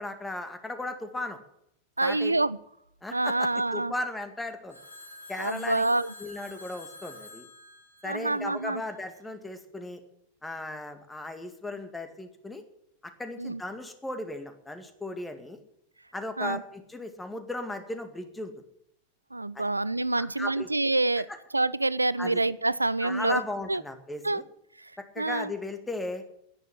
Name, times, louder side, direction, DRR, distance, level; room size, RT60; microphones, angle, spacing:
voice 1, 0.0-1.4 2.0-2.3 3.0-4.8 5.3-5.9 6.2-7.5 8.0-10.0 10.4-12.6 13.2-15.6 16.1-18.5 19.5-19.7 20.2-20.7 21.3-21.4 22.2-22.4 23.0-24.4 25.0-26.2, left 2 dB, 10° left, 8 dB, 2.1 m, -36 dB
voice 2, 2.0-2.6 3.1-3.9 5.4-6.1 8.0-8.8 13.4-13.6 16.4-16.6 19.3-23.4 23.7-23.8 24.2-24.4 24.8-24.9 25.2-25.5, right 2 dB, 85° right, 19 dB, 0.5 m, -27 dB
Telephone, 4.7-8.9, left 1 dB, 90° left, 7.8 m, -48 dB
11.0 x 10.5 x 10.0 m, 0.76 s
figure-of-eight pair, 90°, 0 cm